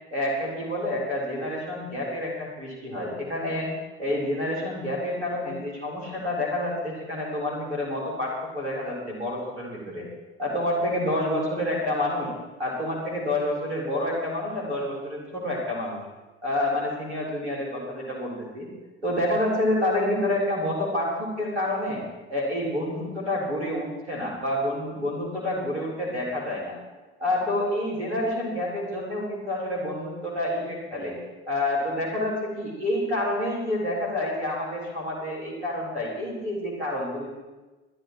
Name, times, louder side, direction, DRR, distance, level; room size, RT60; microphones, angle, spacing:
voice 1, 0.1-3.7 4.0-10.0 10.4-12.3 12.6-16.0 16.4-18.7 19.0-22.0 22.3-26.7 27.2-31.2 31.5-37.3, left 1 dB, 85° right, -4 dB, 3.9 m, -28 dB
23.5 x 12.0 x 3.1 m, 1.2 s
figure-of-eight pair, 60°, 33 cm